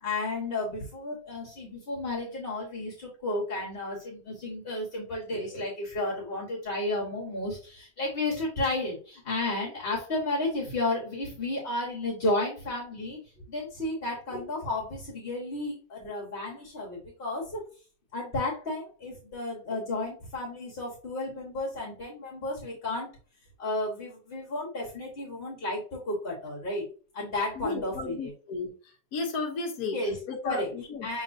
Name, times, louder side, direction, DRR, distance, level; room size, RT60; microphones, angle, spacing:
voice 1, 0.0-13.2 13.5-17.6 18.1-23.1 23.6-26.8 27.1-28.3 29.9-30.7 31.0-31.2, left 2 dB, 35° left, -3 dB, 1.2 m, -32 dB
voice 2, 27.6-28.7 29.1-30.0 30.3-31.1, left 3 dB, 60° left, 1 dB, 1.2 m, -33 dB
6.2 x 3.1 x 2.6 m, 0.38 s
omnidirectional pair, 2.0 m